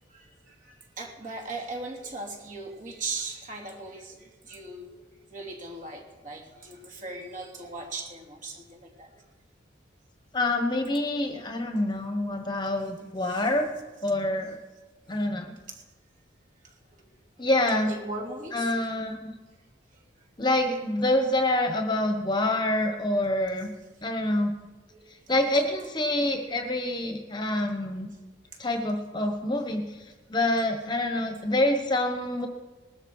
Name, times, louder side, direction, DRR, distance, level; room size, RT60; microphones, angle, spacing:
voice 1, 0.1-5.0 5.3-9.1 12.8-12.9 13.2-13.5 15.7-15.8 17.9-18.7 24.9-25.1, right 3 dB, 40° right, 0 dB, 2.9 m, -39 dB
voice 2, 10.3-13.7 14.0-14.6 15.1-15.5 17.4-17.9 18.5-19.3 20.4-23.7 24.0-24.5 25.3-28.1 28.6-30.0 30.3-32.5, left 1 dB, 25° left, 5 dB, 1.2 m, -26 dB
20.5 x 12.5 x 4.8 m, 1.2 s
head